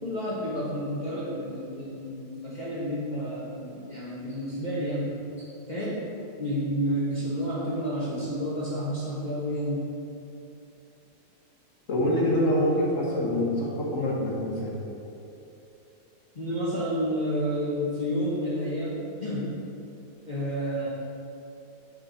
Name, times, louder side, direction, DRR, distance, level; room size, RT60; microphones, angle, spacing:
voice 1, 0.0-6.1 6.4-9.8 16.3-19.5 20.3-20.9, equal, 25° left, -8 dB, 1.2 m, -30 dB
voice 2, 11.9-14.7, left 1 dB, 45° left, -4 dB, 1.8 m, -25 dB
7.8 x 6.6 x 4.2 m, 2.8 s
omnidirectional pair, 2.0 m